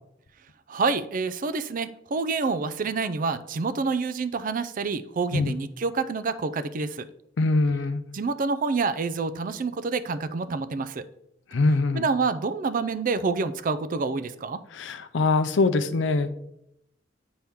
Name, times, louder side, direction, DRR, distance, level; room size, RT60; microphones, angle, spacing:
voice 1, 0.7-7.1 8.1-11.0 11.9-14.6, right 4 dB, 45° right, 14 dB, 0.4 m, -27 dB
voice 2, 7.4-8.0 11.5-12.0 14.7-16.3, left 3 dB, 70° left, 11 dB, 0.5 m, -23 dB
9.1 x 4.3 x 3.6 m, 0.79 s
head